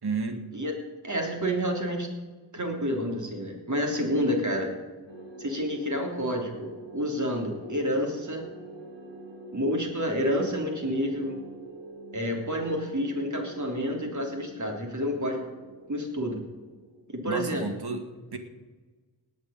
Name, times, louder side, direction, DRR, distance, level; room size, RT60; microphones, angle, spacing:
voice 1, 0.0-0.4 17.3-18.1 18.3-18.4, right 4 dB, 65° right, 6 dB, 2.0 m, -31 dB
voice 2, 0.5-2.1 2.5-4.7 5.4-8.4 9.5-11.4 12.1-15.5 15.9-16.4 17.1-17.6, equal, 45° right, 1 dB, 3.4 m, -29 dB
sound 1, 5.1-17.8, right 2 dB, 80° right, 3.3 m, -46 dB
18.5 x 6.9 x 8.7 m, 1.3 s
wide cardioid pair, 100°, 42 cm